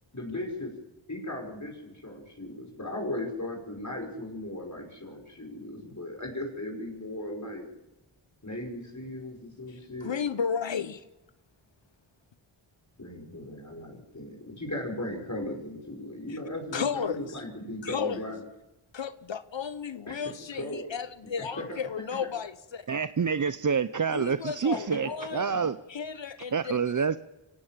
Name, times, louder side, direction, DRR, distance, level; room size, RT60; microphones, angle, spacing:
voice 1, 0.1-0.7 1.1-7.7 8.4-10.1 13.0-18.5 20.1-20.2 20.5-20.9 21.4-21.8 24.7-25.7, left 1 dB, 35° left, 0 dB, 5.5 m, -37 dB
voice 2, 9.7-11.0 16.3-16.4 16.7-17.2 17.8-18.2 18.9-22.9 24.1-25.5 25.9-26.8, left 7 dB, 60° left, 13 dB, 1.0 m, -33 dB
voice 3, 22.9-25.8 26.5-27.2, right 6 dB, 40° right, 13 dB, 0.7 m, -27 dB
23.5 x 17.5 x 7.5 m, 0.98 s
cardioid pair, 40°, 49 cm